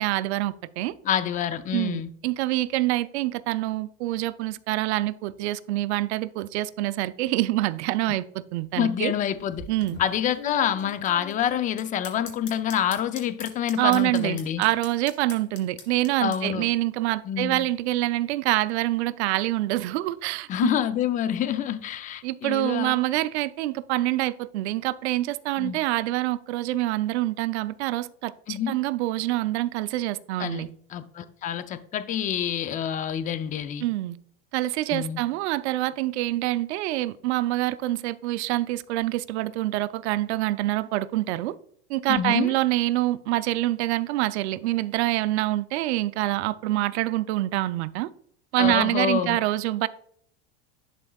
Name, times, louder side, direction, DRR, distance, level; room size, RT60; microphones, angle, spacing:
voice 1, 0.0-0.9 1.7-9.1 9.7-10.0 13.8-20.7 22.2-30.7 33.8-34.2 34.5-41.5 41.9-48.1 48.5-49.9, right 16 dB, 85° right, 0.5 m, -26 dB
voice 2, 1.0-2.1 8.8-9.6 10.0-14.6 16.2-16.7 17.3-17.6 20.5-22.9 25.6-25.8 28.5-28.8 30.4-33.9 34.9-35.2 42.1-42.5 48.6-49.4, left 9 dB, 25° left, 0.4 m, -27 dB
sound 1, 9.3-16.4, left 5 dB, 40° left, 2.1 m, -42 dB
11.0 x 4.4 x 2.3 m
supercardioid pair, 130°, 32 cm